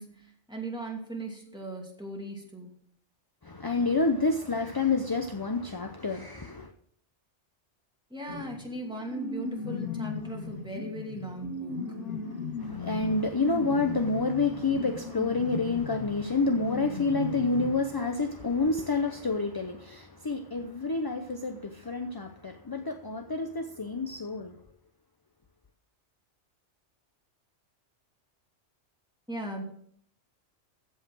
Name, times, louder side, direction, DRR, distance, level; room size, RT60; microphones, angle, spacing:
voice 1, 0.0-2.7 8.1-11.8 29.3-29.6, right 1 dB, 5° right, 2.6 m, -38 dB
voice 2, 3.4-6.7 12.6-24.6, left 3 dB, 25° left, 0.5 m, -28 dB
sound 1, 8.3-17.7, left 4 dB, 85° left, 2.7 m, -37 dB
15.0 x 5.6 x 6.1 m
omnidirectional pair, 1.2 m